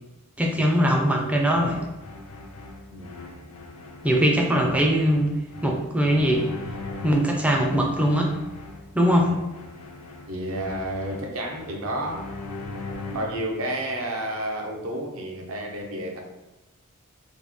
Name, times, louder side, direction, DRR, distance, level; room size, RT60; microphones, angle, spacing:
voice 1, 0.4-1.8 4.0-5.3 5.6-6.5 7.0-8.3 8.9-9.3, equal, 5° right, 0 dB, 0.4 m, -21 dB
sound 1, 1.5-13.5, left 2 dB, 70° left, 0.5 m, -39 dB
voice 2, 10.3-12.2 13.1-16.2, right 1 dB, 65° right, 1 dB, 0.6 m, -31 dB
3.1 x 2.2 x 3.5 m, 1.0 s
head